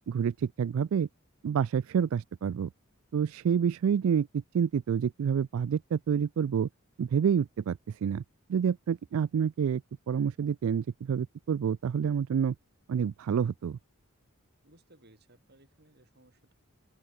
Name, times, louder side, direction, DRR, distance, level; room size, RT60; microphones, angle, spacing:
voice 1, 0.1-1.1 1.4-2.7 3.1-6.7 7.0-8.2 8.5-9.8 10.1-12.6 12.9-13.8, right 7 dB, 70° right, 0.3 m, -28 dB
voice 2, 14.6-16.5, right 1 dB, 45° right, 5.3 m, -61 dB
open air
head